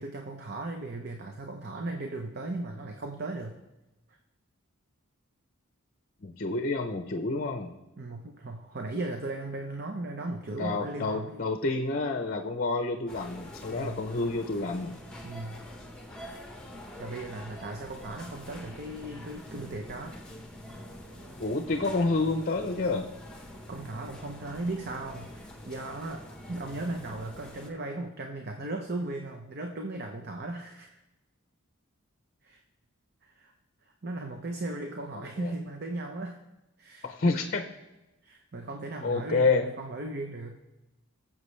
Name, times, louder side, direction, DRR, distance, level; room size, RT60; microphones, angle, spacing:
voice 1, 0.0-3.5 8.0-11.4 13.7-14.0 15.2-15.6 17.0-20.2 23.7-31.0 32.4-32.6 33.2-33.5 33.8-36.4 36.8-37.3 38.2-40.6, right 2 dB, 45° right, 3 dB, 0.8 m, -37 dB
voice 2, 6.2-7.7 10.6-15.0 21.4-23.1 35.1-35.5 37.0-37.6 39.0-39.7, left 3 dB, 40° left, 6 dB, 0.6 m, -29 dB
sound 1, 13.1-27.7, left 1 dB, 5° left, 1.2 m, -45 dB
20.5 x 7.4 x 3.3 m, 1.0 s
head